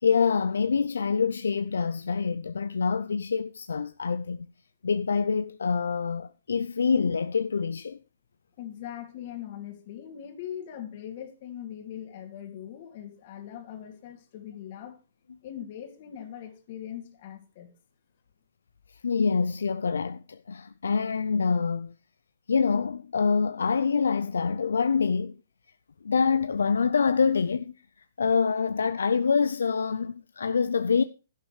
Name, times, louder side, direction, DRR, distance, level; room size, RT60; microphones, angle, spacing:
voice 1, 0.0-4.5 4.8-8.0 18.9-21.9 22.5-25.3 26.0-27.7 28.2-31.0, left 5 dB, 80° left, 0.5 m, -26 dB
voice 2, 8.6-15.0 15.4-17.7, left 10 dB, 50° left, 2.7 m, -41 dB
12.0 x 11.5 x 3.3 m
hypercardioid pair, 125°, 0 cm